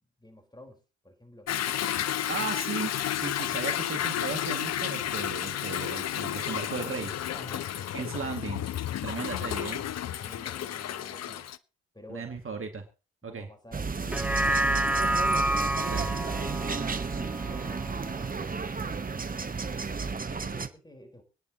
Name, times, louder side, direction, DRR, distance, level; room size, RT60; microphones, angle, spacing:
voice 1, 0.2-1.5 7.3-8.5 10.0-11.5 11.9-12.3 13.2-15.2 15.4-17.0 17.4-18.3 20.0-21.2, left 1 dB, 15° left, 4 dB, 4.4 m, -50 dB
Toilet flush / Drip / Trickle dribble, 1.5-11.6, left 11 dB, 55° left, 0.7 m, -32 dB
voice 2, 2.3-2.9 3.2-7.1 7.9-8.6 9.0-9.8 12.1-12.8 13.2-13.5 15.9-16.1 16.7-16.8, right 5 dB, 45° right, 5 dB, 2.2 m, -36 dB
sound 1, 13.7-20.7, right 5 dB, 30° right, 1.1 m, -32 dB
sound 2, 14.0-18.6 19.0-19.1, right 1 dB, 5° right, 0.7 m, -29 dB
25.0 x 9.8 x 3.0 m, 0.32 s
hypercardioid pair, 45°, 30 cm